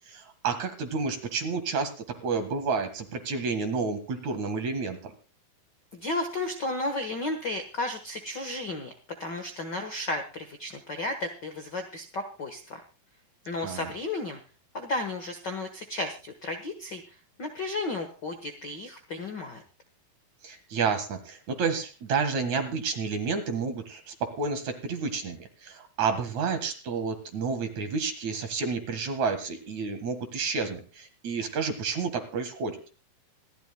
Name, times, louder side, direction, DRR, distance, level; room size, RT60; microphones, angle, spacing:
voice 1, 0.1-1.9 2.2-5.1 13.6-13.8 20.4-32.8, right 5 dB, 60° right, 7 dB, 2.8 m, -30 dB
voice 2, 5.9-8.9 9.2-12.8 13.5-14.4 14.7-17.0 17.4-19.6, left 2 dB, 75° left, 5 dB, 1.0 m, -33 dB
27.0 x 11.5 x 2.2 m, 0.33 s
omnidirectional pair, 4.1 m